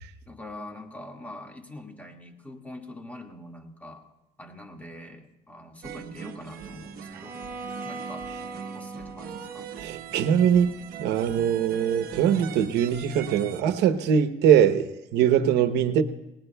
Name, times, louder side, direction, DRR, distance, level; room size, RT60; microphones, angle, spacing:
voice 1, 0.3-4.1 4.4-7.4 7.8-8.3 8.7-9.7 15.6-15.7, left 1 dB, 10° left, 1.9 m, -43 dB
sound 1, 5.8-13.6, right 8 dB, 60° right, 1.1 m, -41 dB
Bowed string instrument, 7.1-11.1, right 3 dB, 15° right, 3.5 m, -41 dB
voice 2, 9.8-16.0, right 8 dB, 85° right, 0.9 m, -22 dB
29.5 x 19.5 x 2.3 m
cardioid pair, 110°, 17 cm